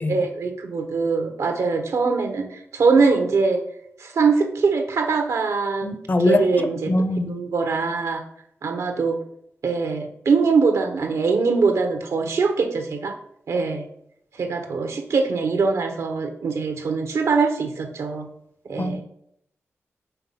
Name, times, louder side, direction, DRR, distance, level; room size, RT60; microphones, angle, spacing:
voice 1, 0.1-3.6 4.0-5.9 6.2-6.9 7.3-8.2 8.6-9.2 9.6-13.2 13.5-13.8 14.3-18.3 18.6-19.0, right 4 dB, 85° right, 1.0 m, -22 dB
voice 2, 5.8-6.5 6.9-7.4 18.8-19.0, left 2 dB, 40° left, 0.6 m, -22 dB
5.8 x 3.7 x 5.6 m
cardioid pair, 70°, 5 cm